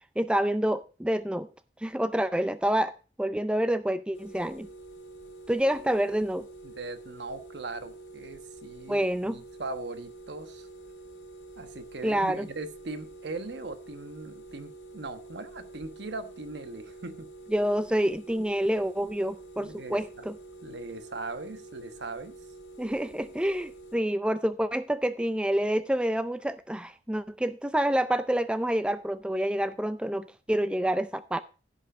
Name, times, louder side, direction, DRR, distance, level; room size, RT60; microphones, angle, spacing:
voice 1, 0.2-1.5 1.8-2.9 3.2-4.7 5.5-6.5 8.9-9.4 12.0-12.5 17.5-20.4 22.8-31.4, right 1 dB, 5° right, 0.4 m, -28 dB
sound 1, 4.1-24.0, right 2 dB, 75° left, 2.5 m, -47 dB
voice 2, 6.6-10.7 11.6-17.3 19.6-20.0 20.6-22.3, right 3 dB, 70° right, 1.2 m, -39 dB
15.5 x 5.4 x 4.9 m
head